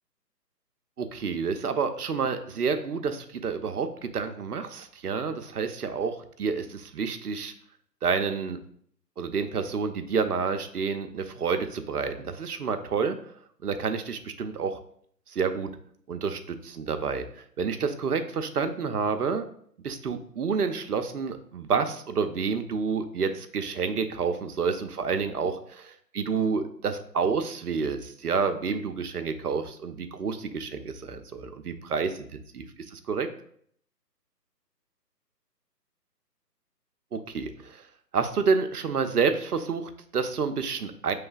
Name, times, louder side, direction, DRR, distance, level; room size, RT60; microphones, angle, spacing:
voice 1, 1.0-7.5 8.0-8.6 9.2-13.2 13.6-14.8 15.3-15.7 16.1-19.4 19.8-33.3 37.1-37.8 38.1-41.1, right 5 dB, 65° right, 8 dB, 0.6 m, -29 dB
6.8 x 3.2 x 2.3 m, 0.63 s
figure-of-eight pair, 140°, 50 cm